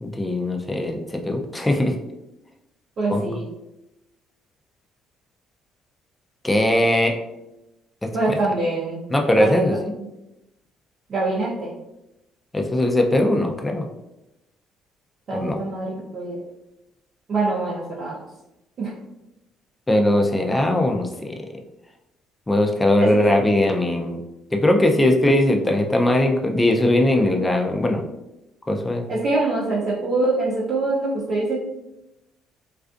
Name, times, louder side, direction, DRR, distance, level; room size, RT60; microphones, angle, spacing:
voice 1, 0.0-1.9 3.1-3.3 6.4-7.1 8.0-8.4 9.1-9.8 12.5-13.9 15.3-15.6 19.9-21.3 22.5-24.2 24.5-28.0 28.7-29.2, left 1 dB, 15° left, 3 dB, 0.4 m, -20 dB
voice 2, 3.0-3.4 8.1-9.0 9.4-9.6 10.0-10.1 11.1-11.7 15.3-16.4 17.3-18.2 18.8-18.9 23.0-23.1 29.1-31.6, right 2 dB, 55° right, -7 dB, 0.6 m, -24 dB
2.4 x 2.3 x 2.5 m, 0.93 s
supercardioid pair, 75°, 0 cm